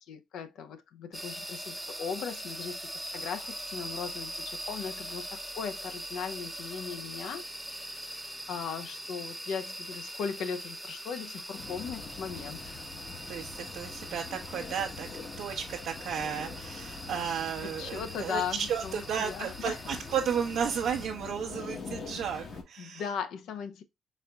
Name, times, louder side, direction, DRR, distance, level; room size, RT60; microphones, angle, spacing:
voice 1, 0.1-2.8 3.1-7.5 7.7-12.8 17.6-20.0 22.8-23.8, left 7 dB, 80° left, 0.7 m, -38 dB
sound 1, 1.1-21.1, right 1 dB, 5° right, 0.6 m, -42 dB
sound 2, 11.6-22.6, left 4 dB, 60° left, 1.2 m, -44 dB
voice 2, 13.3-15.1 15.4-18.4 18.7-23.0, right 7 dB, 75° right, 0.8 m, -33 dB
4.2 x 3.9 x 2.2 m
cardioid pair, 90°, 0 cm